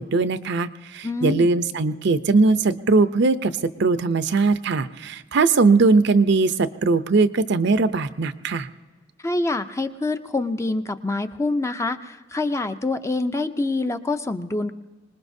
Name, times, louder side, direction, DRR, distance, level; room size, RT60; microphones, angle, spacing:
voice 1, 0.0-3.5 3.8-8.7, right 3 dB, 60° right, 12 dB, 0.6 m, -20 dB
voice 2, 1.0-1.5 9.2-14.7, left 2 dB, 15° left, 9 dB, 0.5 m, -26 dB
25.5 x 20.0 x 2.7 m, 1.3 s
head